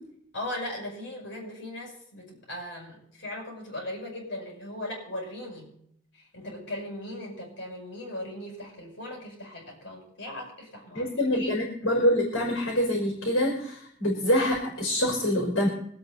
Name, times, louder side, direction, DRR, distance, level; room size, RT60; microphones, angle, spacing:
voice 1, 0.3-5.7 6.1-11.5, left 1 dB, 60° left, -1 dB, 8.0 m, -38 dB
voice 2, 10.9-15.7, equal, 75° left, -2 dB, 4.9 m, -25 dB
25.0 x 8.9 x 4.2 m, 0.68 s
head